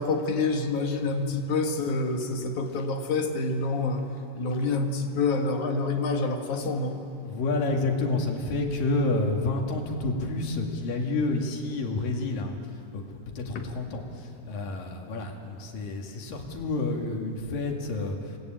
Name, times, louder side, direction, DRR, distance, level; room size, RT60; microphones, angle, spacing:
voice 1, 0.0-4.1 4.3-7.0 13.5-13.6, left 3 dB, 65° left, 4 dB, 3.0 m, -27 dB
voice 2, 7.2-12.5 12.9-18.2, left 2 dB, 85° left, 2 dB, 4.0 m, -29 dB
28.0 x 19.5 x 9.0 m, 2.7 s
omnidirectional pair, 3.9 m